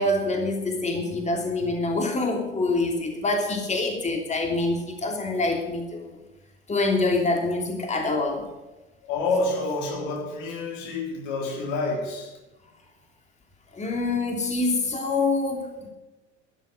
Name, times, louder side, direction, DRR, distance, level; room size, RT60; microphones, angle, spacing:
voice 1, 0.0-6.1 6.7-8.5 13.7-15.9, left 2 dB, 20° left, 3.0 m, -25 dB
voice 2, 9.0-12.4, left 3 dB, 60° left, 3.7 m, -28 dB
12.5 x 12.5 x 6.4 m
hypercardioid pair, 75°, 35 cm